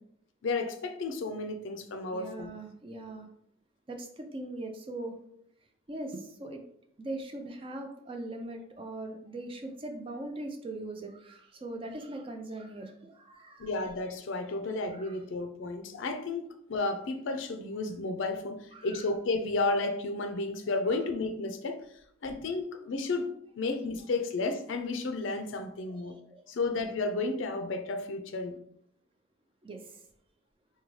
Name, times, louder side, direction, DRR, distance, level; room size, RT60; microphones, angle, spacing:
voice 1, 0.4-2.5 13.6-21.8 22.2-26.2 26.5-28.6, left 3 dB, 70° left, 8 dB, 0.4 m, -32 dB
voice 2, 2.1-3.3 3.9-5.2 5.9-6.6 7.0-13.8 14.7-15.2 18.7-19.1 20.9-21.0 25.9-26.4 29.6-30.0, right 2 dB, 25° right, 4 dB, 0.4 m, -41 dB
4.6 x 2.2 x 3.1 m, 0.72 s
head